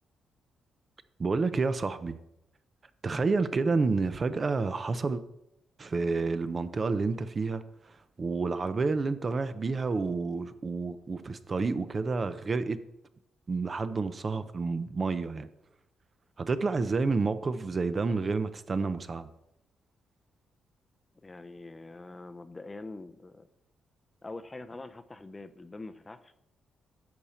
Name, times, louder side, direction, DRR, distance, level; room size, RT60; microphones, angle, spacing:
voice 1, 1.2-2.2 3.0-5.2 5.8-7.6 8.2-12.8 13.5-15.5 16.4-19.3, right 4 dB, 30° right, 0.5 m, -29 dB
voice 2, 21.2-23.5 24.2-26.3, left 2 dB, 20° left, 0.5 m, -44 dB
10.5 x 7.0 x 4.3 m
cardioid pair, 125°, 0 cm